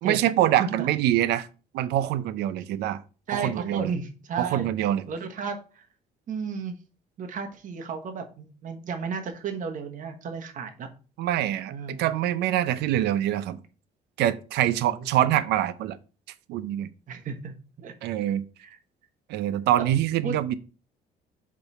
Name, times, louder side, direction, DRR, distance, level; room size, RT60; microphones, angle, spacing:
voice 1, 0.0-1.5 1.7-3.0 3.3-3.9 4.4-5.1 11.2-13.6 14.2-16.0 16.5-16.9 18.0-18.4 19.3-20.6, right 12 dB, 80° right, 0.6 m, -25 dB
voice 2, 3.3-4.7 5.1-5.8 6.3-6.7 7.2-10.9 11.7-12.0 14.7-15.1 17.1-17.9 18.6-18.8 20.2-20.4, right 5 dB, 50° right, 1.2 m, -33 dB
5.4 x 4.0 x 5.5 m
cardioid pair, 110°, 17 cm